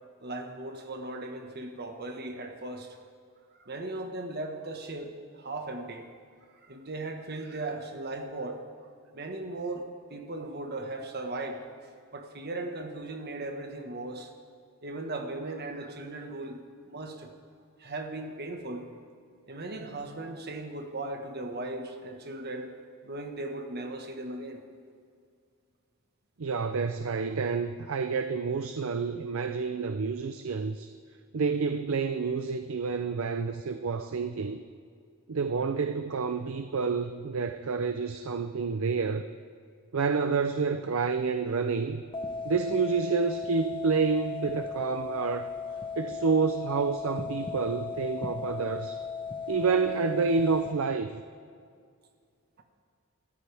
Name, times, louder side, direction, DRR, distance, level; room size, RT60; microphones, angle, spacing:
voice 1, 0.2-3.0 3.6-6.1 6.5-8.6 9.1-11.7 12.1-14.3 14.8-16.6 16.9-17.3 17.8-18.9 19.5-22.7 23.0-24.6, right 2 dB, 45° right, 4 dB, 1.5 m, -37 dB
voice 2, 26.4-30.9 31.3-34.6 35.3-39.3 39.9-42.0 42.4-45.5 46.0-49.0 49.5-51.1, right 5 dB, 65° right, 8 dB, 0.5 m, -29 dB
sound 1, 42.1-50.7, left 5 dB, 25° left, 1.0 m, -37 dB
25.5 x 13.5 x 3.5 m, 2.2 s
head